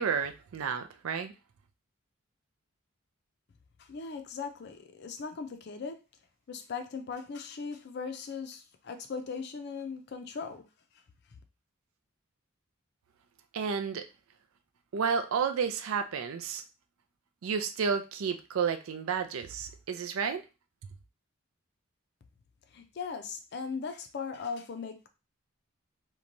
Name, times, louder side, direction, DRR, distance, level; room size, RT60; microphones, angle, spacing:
voice 1, 0.0-1.3 13.5-14.1 14.9-16.6 17.4-20.4, right 6 dB, 85° right, 0.4 m, -31 dB
voice 2, 3.8-6.0 6.5-10.7 22.7-25.1, left 5 dB, 50° left, 0.4 m, -39 dB
2.9 x 2.2 x 2.6 m
head